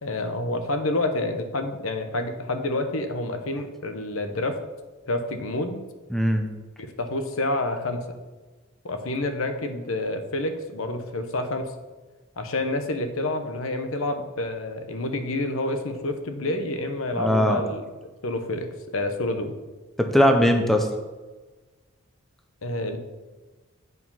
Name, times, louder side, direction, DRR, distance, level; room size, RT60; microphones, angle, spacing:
voice 1, 0.0-4.5 5.1-5.8 6.8-8.0 8.8-11.7 12.4-17.8 18.2-18.7 18.9-19.5 22.6-23.0, left 2 dB, 75° left, 7 dB, 0.9 m, -28 dB
voice 2, 6.1-6.5 17.1-17.6 20.0-20.9, equal, ahead, 4 dB, 0.6 m, -20 dB
8.0 x 4.8 x 5.5 m, 1.2 s
head